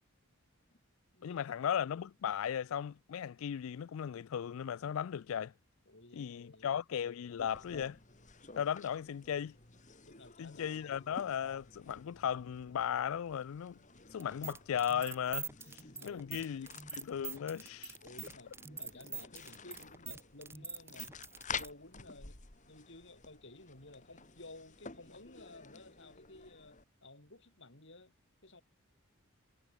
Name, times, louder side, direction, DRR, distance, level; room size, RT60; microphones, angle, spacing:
voice 1, 1.2-5.5 6.1-8.0 8.6-9.6 10.4-13.8 14.1-15.5 16.0-18.0, left 8 dB, 75° left, 0.4 m, -36 dB
voice 2, 5.9-6.8 10.0-11.1 15.9-16.8 18.0-21.2 21.5-22.4 22.6-28.1 28.4-28.6, left 2 dB, 60° left, 4.1 m, -55 dB
sound 1, 7.4-26.8, left 5 dB, 35° left, 2.5 m, -51 dB
sound 2, 14.2-21.7, right 5 dB, 10° right, 1.0 m, -44 dB
head